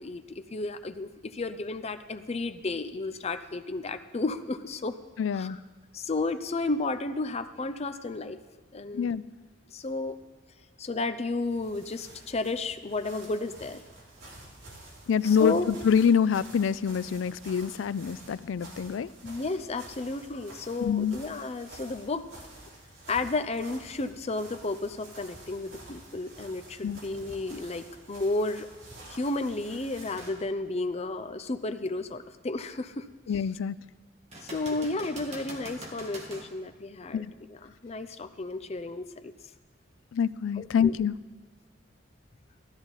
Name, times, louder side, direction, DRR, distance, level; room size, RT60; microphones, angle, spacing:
voice 1, 0.0-5.0 5.3-5.6 5.9-8.4 8.7-9.1 9.7-10.2 10.8-13.8 15.2-15.7 19.2-22.3 23.1-28.7 29.1-33.0 33.3-33.5 34.4-39.3 40.6-40.9, left 3 dB, 35° left, 10 dB, 0.6 m, -32 dB
voice 2, 5.2-5.6 8.9-9.2 15.1-19.1 20.8-21.2 26.8-27.0 33.3-33.8 37.1-37.3 40.1-41.1, left 7 dB, 80° left, 17 dB, 0.4 m, -26 dB
sound 1, 11.3-30.3, right 2 dB, 85° right, 3.5 m, -49 dB
sound 2, 30.2-30.4 31.0-31.1 34.3-36.5 40.2-40.3, right 1 dB, 35° right, 1.8 m, -43 dB
15.0 x 13.0 x 4.0 m, 1.3 s
head